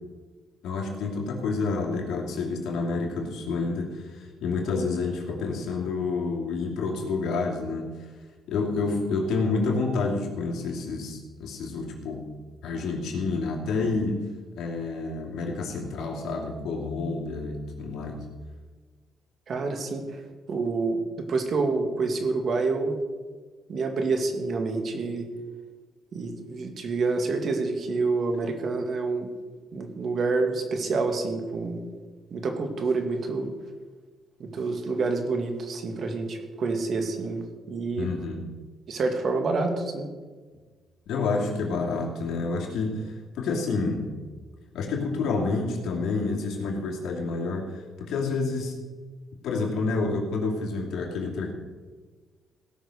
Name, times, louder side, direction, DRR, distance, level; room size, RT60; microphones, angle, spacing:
voice 1, 0.6-8.1 8.5-12.3 12.6-14.3 14.5-18.2 38.0-38.4 41.1-44.2 44.7-48.8 49.4-51.5, left 3 dB, 75° left, 0 dB, 2.8 m, -29 dB
voice 2, 19.5-20.2 20.5-23.0 23.7-25.3 26.1-29.3 29.7-31.8 32.3-33.5 34.4-37.4 37.7-38.1 38.9-40.1, right 3 dB, 55° right, 4 dB, 2.2 m, -27 dB
17.0 x 6.2 x 6.5 m, 1.4 s
cardioid pair, 90°, 0 cm